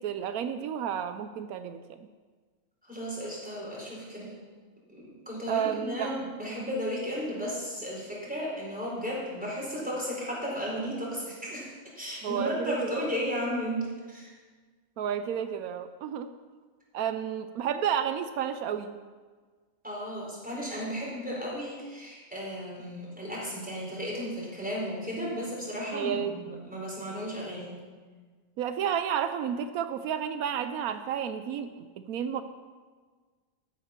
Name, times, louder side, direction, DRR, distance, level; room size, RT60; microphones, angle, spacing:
voice 1, 0.0-1.8 5.5-6.1 6.5-6.7 12.2-13.0 15.0-16.3 16.9-18.9 25.9-26.7 28.6-32.4, right 8 dB, 85° right, 9 dB, 1.1 m, -31 dB
voice 2, 2.8-4.4 4.9-14.3 19.8-27.7, equal, 5° right, -5 dB, 4.2 m, -34 dB
13.5 x 8.2 x 5.8 m, 1.5 s
omnidirectional pair, 1.5 m